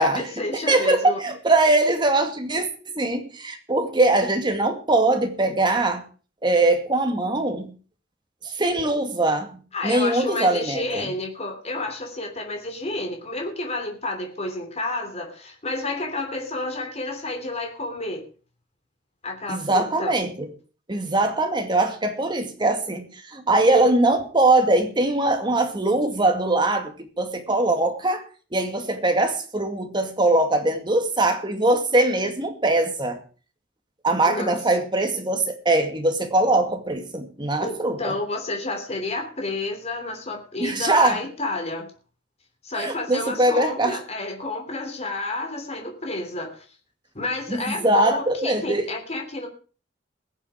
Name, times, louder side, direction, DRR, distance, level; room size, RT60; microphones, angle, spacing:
voice 1, 0.0-1.2 9.7-18.2 19.2-20.1 34.3-34.6 37.6-41.9 42.6-46.6 47.1-49.5, left 2 dB, 35° left, 3 dB, 3.1 m, -30 dB
voice 2, 0.5-2.7 2.9-6.0 6.4-7.7 8.4-11.1 19.5-20.5 20.9-28.2 28.5-33.2 34.0-38.1 40.6-41.2 42.7-44.0 47.5-48.9, right 2 dB, 25° right, 5 dB, 2.3 m, -22 dB
21.5 x 7.4 x 4.8 m, 0.37 s
head